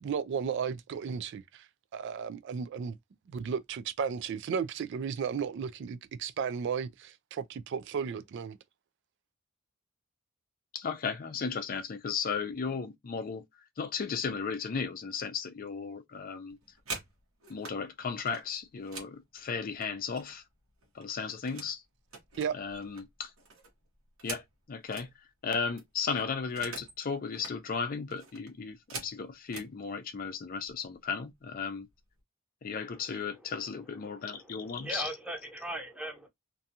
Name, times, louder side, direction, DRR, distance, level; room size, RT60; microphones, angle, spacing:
voice 1, 0.0-1.7 1.9-3.0 3.3-8.6 22.4-22.5, right 6 dB, 60° right, 0.3 m, -34 dB
voice 2, 10.7-13.4 13.8-16.6 17.5-20.4 20.9-21.8 22.5-23.3 24.2-25.1 25.4-31.9 32.6-35.1, left 5 dB, 45° left, 0.4 m, -35 dB
sound 1, 16.5-17.8 18.2-20.5 20.8-21.8 22.1-25.1 25.5-25.6 25.8-27.0 27.3-27.6 28.1-29.7 30.6-30.7 31.1-31.4 31.7-32.2, right 4 dB, 90° right, 1.1 m, -45 dB
voice 3, 34.0-36.3, right 1 dB, 5° right, 0.7 m, -39 dB
2.6 x 2.3 x 2.7 m
head